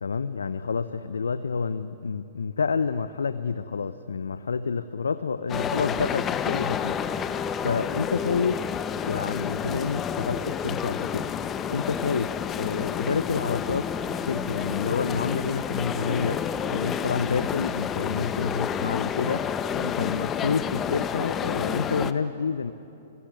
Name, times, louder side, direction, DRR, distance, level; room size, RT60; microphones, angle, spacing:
voice 1, 0.0-16.4 16.7-19.5 19.7-22.7, left 5 dB, 75° left, 12 dB, 0.7 m, -29 dB
sound 1, 5.5-22.1, left 7 dB, 20° left, 1.0 m, -30 dB
28.0 x 20.0 x 9.8 m, 2.9 s
figure-of-eight pair, 110°, 0 cm